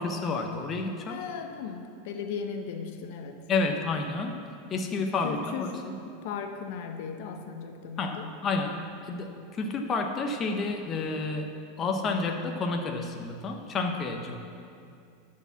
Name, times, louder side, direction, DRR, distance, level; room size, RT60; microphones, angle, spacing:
voice 1, 0.0-1.2 3.5-5.7 8.0-11.5 11.8-14.4, left 3 dB, 30° left, 3 dB, 0.8 m, -30 dB
voice 2, 1.1-3.4 5.2-8.3, left 6 dB, 65° left, 5 dB, 0.9 m, -37 dB
11.5 x 4.7 x 7.0 m, 2.4 s
supercardioid pair, 130°, 0 cm